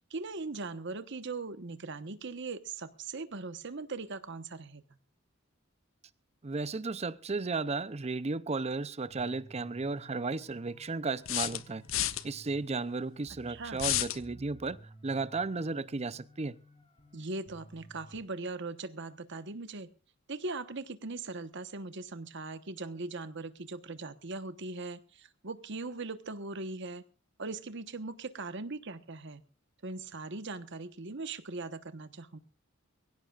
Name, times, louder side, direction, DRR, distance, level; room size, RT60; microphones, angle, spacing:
voice 1, 0.0-4.8 13.5-13.8 17.1-19.9 20.3-27.0 27.4-29.4 29.8-32.4, right 3 dB, 60° right, 1.2 m, -40 dB
voice 2, 6.4-11.8 12.2-16.6, right 3 dB, 30° right, 0.6 m, -34 dB
sound 1, 9.1-18.2, equal, 30° left, 3.8 m, -56 dB
sound 2, 9.2-9.3 11.3-12.2 13.8-14.2, left 13 dB, 75° left, 0.9 m, -30 dB
23.5 x 16.5 x 2.5 m
head